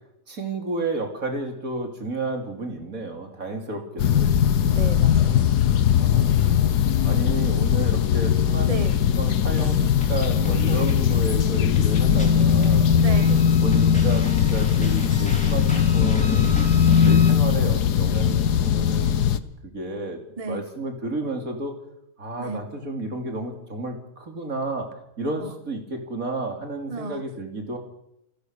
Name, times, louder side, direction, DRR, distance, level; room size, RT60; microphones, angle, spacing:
voice 1, 0.3-4.3 6.0-8.7 9.2-9.8 10.1-12.9 13.6-15.7 15.9-19.3 19.6-21.8 22.2-24.9 25.2-27.8, right 2 dB, 60° right, 3 dB, 3.8 m, -32 dB
sound 1, 4.0-19.4, left 8 dB, 80° left, 1.6 m, -19 dB
voice 2, 4.7-5.4 8.7-9.0 12.9-13.4 20.4-20.6 22.4-22.6 25.4-25.5 26.9-27.2, right 3 dB, 25° right, 10 dB, 1.0 m, -33 dB
sound 2, 9.6-17.3, equal, 5° left, 4.3 m, -35 dB
29.5 x 16.0 x 6.7 m, 0.85 s
omnidirectional pair, 1.7 m